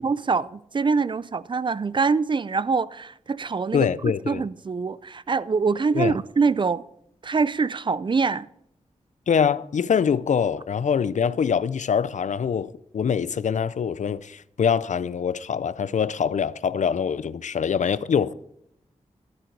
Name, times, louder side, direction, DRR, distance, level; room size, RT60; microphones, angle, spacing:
voice 1, 0.0-3.9 4.3-6.8 7.2-8.5, right 4 dB, 40° right, 0.4 m, -24 dB
voice 2, 3.7-4.5 5.9-6.2 9.3-18.3, left 7 dB, 70° left, 0.5 m, -24 dB
12.0 x 10.5 x 4.6 m
wide cardioid pair, 110°, 13 cm